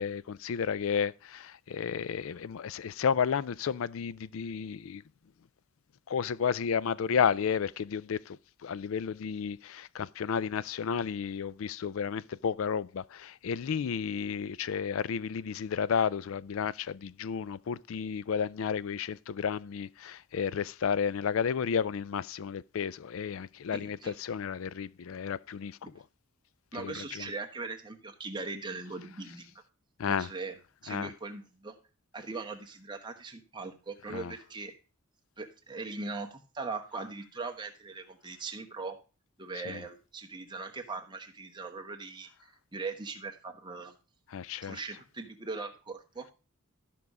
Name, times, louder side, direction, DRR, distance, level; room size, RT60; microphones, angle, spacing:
voice 1, 0.0-5.0 6.1-8.4 8.6-25.9 26.8-27.3 30.0-30.3 30.9-31.1 34.1-34.3 39.7-39.8 44.3-44.8, left 7 dB, 65° left, 0.4 m, -32 dB
voice 2, 23.7-24.2 26.7-29.5 30.1-30.6 30.8-31.7 32.1-34.7 35.4-39.0 39.4-43.9 44.6-46.3, right 3 dB, 20° right, 1.2 m, -40 dB
13.0 x 5.4 x 4.8 m
head